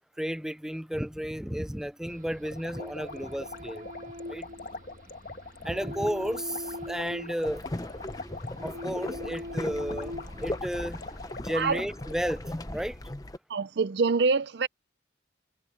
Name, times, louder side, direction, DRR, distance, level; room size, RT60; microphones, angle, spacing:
voice 1, 0.2-3.8 4.3-4.5 5.6-7.6 8.6-11.0 11.4-13.0, equal, 5° right, 0.4 m, -33 dB
sound 1, 2.1-11.4, left 1 dB, 45° right, 1.7 m, -42 dB
sound 2, 2.4-12.4, left 3 dB, 50° left, 1.6 m, -44 dB
sound 3, 7.4-13.4, left 1 dB, 20° left, 0.8 m, -38 dB
voice 2, 13.5-14.7, right 4 dB, 65° right, 0.5 m, -25 dB
head